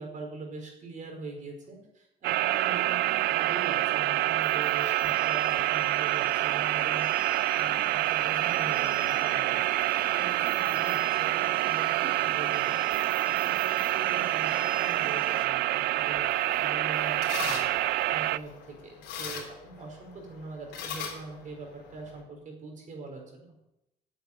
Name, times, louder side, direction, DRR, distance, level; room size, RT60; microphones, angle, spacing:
voice 1, 0.0-23.5, right 3 dB, 50° right, 2 dB, 4.6 m, -43 dB
sound 1, 2.2-18.4, right 16 dB, 75° right, 0.4 m, -27 dB
sound 2, 3.2-15.5, right 2 dB, 30° right, 2.3 m, -46 dB
sound 3, 16.2-22.2, left 6 dB, 85° left, 3.5 m, -41 dB
9.7 x 8.1 x 8.8 m, 0.89 s
cardioid pair, 110°, 17 cm